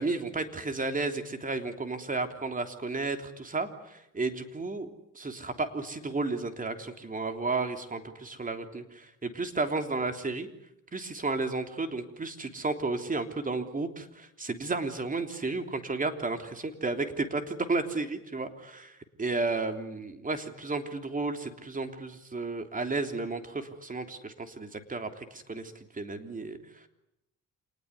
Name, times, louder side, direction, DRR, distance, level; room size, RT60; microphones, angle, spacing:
voice 1, 0.0-10.5 10.9-26.6, right 3 dB, 25° right, 7 dB, 3.4 m, -33 dB
27.5 x 19.5 x 9.7 m, 0.83 s
cardioid pair, 90°, 30 cm